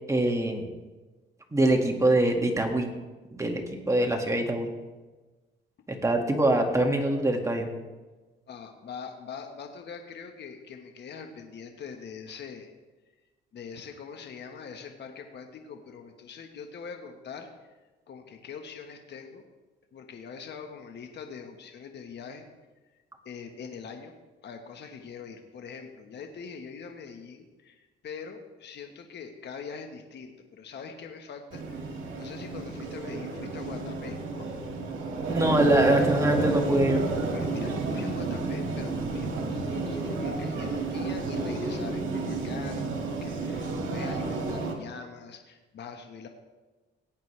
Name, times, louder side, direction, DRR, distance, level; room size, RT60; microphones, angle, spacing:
voice 1, 0.1-0.7 1.5-2.9 3.3-4.7 6.0-7.7 35.3-37.0, right 1 dB, 15° right, 3 dB, 2.0 m, -24 dB
voice 2, 8.5-12.7 13.5-17.7 18.1-19.4 19.9-22.4 23.2-24.1 24.4-34.5 37.3-46.3, left 6 dB, 60° left, 4 dB, 1.3 m, -43 dB
sound 1, 31.5-44.7, right 3 dB, 75° right, 2.2 m, -31 dB
17.5 x 9.0 x 3.3 m, 1.2 s
cardioid pair, 90°, 20 cm